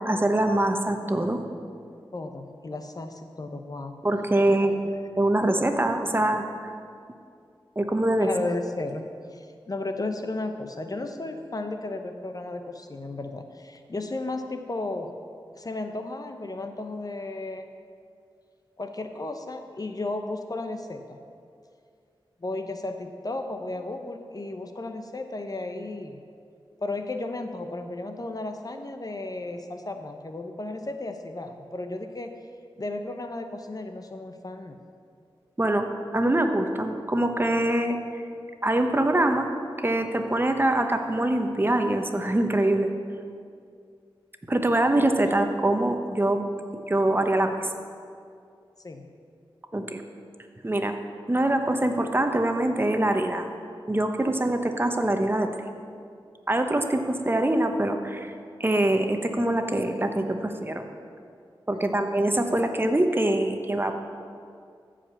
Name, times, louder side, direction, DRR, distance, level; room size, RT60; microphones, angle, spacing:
voice 1, 0.0-1.4 4.0-4.7 5.2-6.4 7.8-8.3 35.6-38.2 38.6-39.5 39.8-42.9 44.5-46.4 46.9-47.7 49.7-50.0 50.6-51.0 51.3-53.5 53.9-55.5 56.5-58.3 58.6-60.8 61.7-63.9, right 1 dB, 25° right, 5 dB, 1.0 m, -24 dB
voice 2, 2.1-4.0 4.6-4.7 8.2-15.1 15.5-17.6 18.8-21.2 22.4-26.2 26.8-32.3 32.8-34.8 45.3-45.4 48.8-49.1 61.7-62.0, left 2 dB, 45° left, 6 dB, 0.8 m, -34 dB
14.0 x 5.1 x 7.1 m, 2.4 s
wide cardioid pair, 55°, 9 cm